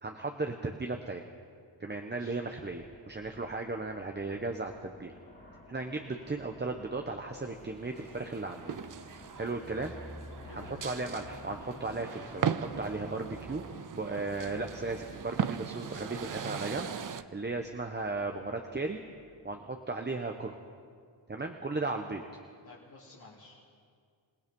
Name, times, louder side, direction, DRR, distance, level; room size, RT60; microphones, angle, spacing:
voice 1, 0.0-1.2 1.8-5.1 5.7-8.7 9.4-9.9 10.5-13.6 13.9-19.0 19.4-20.6 21.3-22.2, right 3 dB, 25° right, 4 dB, 1.0 m, -36 dB
voice 2, 2.0-2.4 10.4-10.9 22.6-23.7, left 2 dB, 60° left, -7 dB, 3.3 m, -53 dB
Aircraft, 2.6-19.7, left 1 dB, 25° left, 2.6 m, -53 dB
sound 1, 7.6-17.2, right 7 dB, 45° right, 0.7 m, -38 dB
27.0 x 18.0 x 5.4 m, 2.1 s
wide cardioid pair, 130°, 44 cm